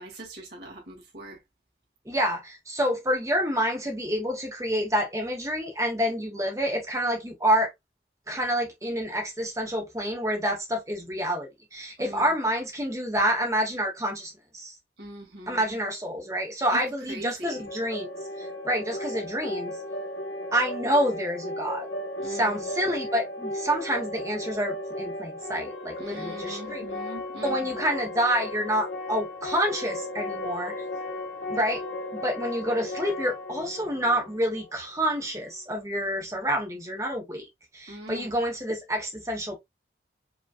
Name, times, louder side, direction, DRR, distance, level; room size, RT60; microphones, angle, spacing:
voice 1, 0.0-1.4 12.0-12.4 15.0-15.8 16.7-16.8 17.1-17.6 22.2-22.7 26.0-27.8 37.9-38.4, right 1 dB, 65° right, 2.2 m, -41 dB
voice 2, 2.0-7.7 8.3-14.7 15.5-19.8 20.5-21.9 22.2-26.8 27.4-30.8 31.5-31.8 32.1-37.5 37.7-39.6, equal, 15° right, 1.1 m, -28 dB
sound 1, 17.4-35.2, left 1 dB, 75° left, 1.3 m, -35 dB
5.0 x 3.1 x 2.4 m
head